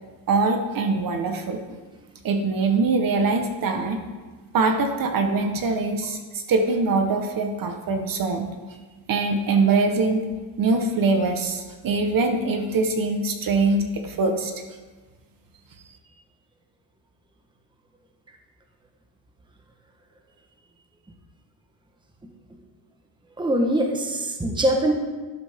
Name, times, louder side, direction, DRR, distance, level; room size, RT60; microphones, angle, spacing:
voice 1, 0.3-1.6 2.2-4.0 4.5-8.5 9.1-10.2 10.6-14.5, right 3 dB, 45° right, 5 dB, 1.2 m, -23 dB
voice 2, 23.4-24.9, right 1 dB, 10° right, 3 dB, 1.1 m, -22 dB
12.0 x 11.5 x 3.6 m, 1.3 s
cardioid pair, 140°, 49 cm